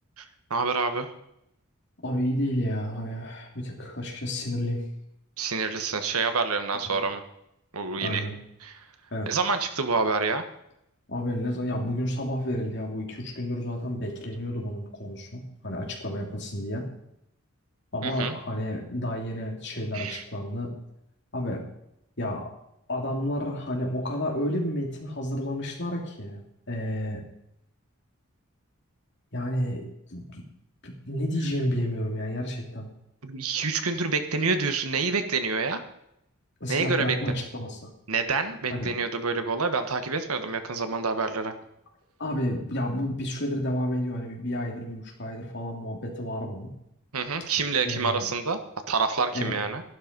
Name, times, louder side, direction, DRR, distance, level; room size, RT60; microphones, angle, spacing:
voice 1, 0.2-1.1 5.4-7.2 7.7-8.2 8.6-8.7 9.3-10.4 18.0-18.4 19.9-20.2 33.2-35.8 36.7-37.4 38.1-41.5 47.1-48.6 48.9-49.8, right 4 dB, 85° right, 8 dB, 1.5 m, -27 dB
voice 2, 2.0-4.8 6.9-7.0 8.0-8.3 9.1-9.3 11.1-16.8 17.9-20.7 21.3-21.6 22.2-22.5 22.9-26.4 26.7-27.2 29.3-29.8 30.1-30.4 30.8-32.9 36.6-37.8 38.7-38.9 42.2-46.7 47.8-48.2 49.3-49.6, equal, 50° left, 0 dB, 3.2 m, -30 dB
13.0 x 11.5 x 5.4 m, 0.79 s
head